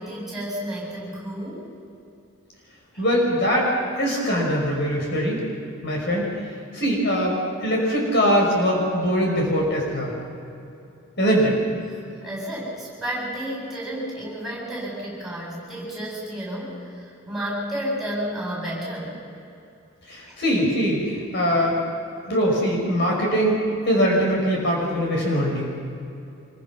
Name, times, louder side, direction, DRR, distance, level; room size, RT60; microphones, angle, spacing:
voice 1, 0.0-1.7 2.9-3.1 11.7-19.2 20.3-20.4, equal, ahead, -5 dB, 8.0 m, -32 dB
voice 2, 3.0-3.7 4.0-5.4 5.8-6.3 6.7-10.1 11.2-11.6 20.1-21.8 22.3-25.7, equal, 55° left, -2 dB, 5.6 m, -22 dB
26.0 x 23.0 x 5.9 m, 2.7 s
head